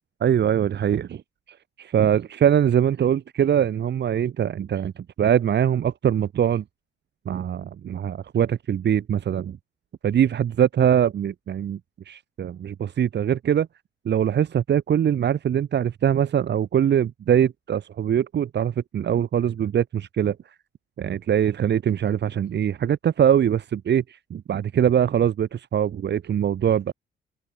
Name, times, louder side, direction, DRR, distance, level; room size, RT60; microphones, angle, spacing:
voice 1, 0.2-1.2 1.5-6.6 7.3-9.6 10.0-11.8 12.1-13.7 14.1-20.4 21.0-26.9, right 9 dB, 60° right, 3.5 m, -22 dB
cardioid pair, 90°, 20 cm